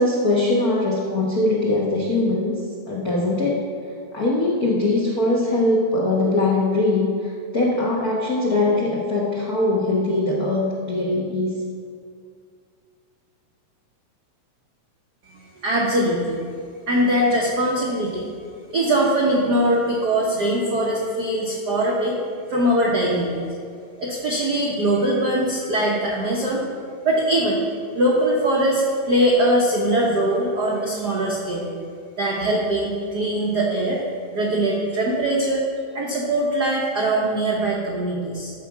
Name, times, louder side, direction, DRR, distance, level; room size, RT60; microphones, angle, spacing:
voice 1, 0.0-2.6 2.9-3.6 4.1-11.5, left 2 dB, 75° left, -4 dB, 0.8 m, -21 dB
voice 2, 15.3-16.5 16.9-18.3 18.7-22.2 22.5-23.4 24.0-26.6 27.0-27.7 27.9-31.6 32.2-34.0 34.3-35.6 35.9-38.5, right 1 dB, 75° right, -3 dB, 0.9 m, -21 dB
12.5 x 4.7 x 6.0 m, 2.3 s
omnidirectional pair, 3.5 m